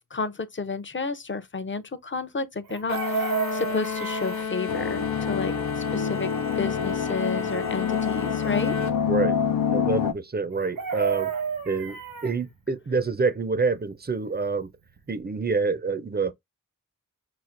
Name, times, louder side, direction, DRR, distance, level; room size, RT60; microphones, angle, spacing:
voice 1, 0.1-6.3 6.6-8.8, left 4 dB, 35° left, 0.6 m, -31 dB
Chicken rooster, 2.6-4.5 10.5-12.4 14.6-14.7 15.0-15.2, right 7 dB, 85° right, 1.0 m, -30 dB
sound 1, 2.9-9.0, left 6 dB, 55° left, 0.9 m, -31 dB
sound 2, 4.7-10.1, left 7 dB, 80° left, 0.5 m, -27 dB
voice 2, 9.1-9.4 9.7-11.3 11.7-14.7 15.1-16.3, right 4 dB, 30° right, 0.4 m, -27 dB
5.8 x 2.4 x 2.5 m
wide cardioid pair, 70°, 34 cm